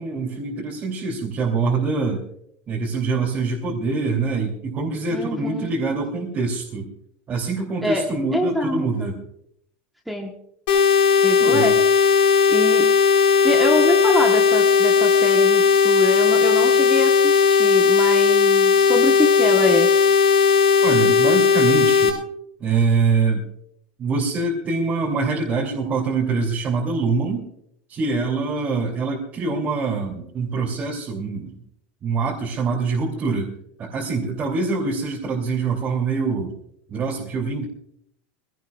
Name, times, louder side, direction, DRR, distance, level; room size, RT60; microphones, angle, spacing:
voice 1, 0.0-2.2 2.7-6.9 7.3-9.2 11.4-11.8 20.8-22.1 22.6-23.5 24.0-27.5 27.9-31.6 32.0-33.5 33.8-36.5 36.9-37.6, right 4 dB, 25° right, -4 dB, 2.7 m, -24 dB
voice 2, 5.1-5.7 7.8-8.0 8.3-9.1 10.1-10.3 11.2-11.7 12.5-12.9 13.4-19.9, equal, ahead, 1 dB, 1.1 m, -25 dB
sound 1, 10.7-22.1, left 6 dB, 85° left, 4.3 m, -16 dB
25.0 x 17.0 x 2.3 m, 0.72 s
supercardioid pair, 165°, 6 cm